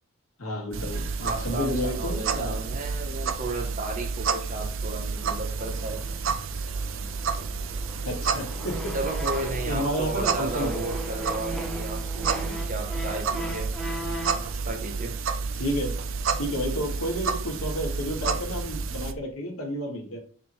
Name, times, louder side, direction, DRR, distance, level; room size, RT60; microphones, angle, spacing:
voice 1, 0.4-2.6 8.1-9.0 9.6-10.8 15.5-16.0 16.4-20.2, equal, 80° left, 1 dB, 2.1 m, -31 dB
sound 1, 0.7-19.1, right 5 dB, 65° right, 0.6 m, -30 dB
voice 2, 1.2-6.2 8.9-13.7 14.3-15.2, right 2 dB, 35° right, 1 dB, 1.0 m, -34 dB
sound 2, 5.6-9.8 10.2-14.5, equal, 5° left, 1.1 m, -38 dB
7.2 x 3.8 x 4.3 m, 0.43 s
head